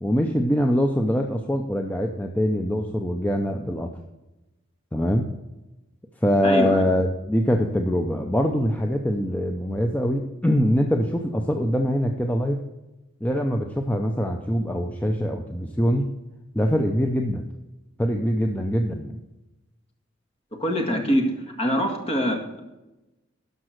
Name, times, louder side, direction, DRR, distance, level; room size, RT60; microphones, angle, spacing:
voice 1, 0.0-3.9 4.9-5.3 6.2-12.6 13.2-16.1 16.5-17.5 18.0-19.2, equal, 10° left, 3 dB, 0.6 m, -23 dB
voice 2, 6.4-6.8 20.6-21.2 21.6-22.6, equal, 30° left, 3 dB, 1.8 m, -24 dB
12.5 x 5.4 x 6.4 m, 1.0 s
head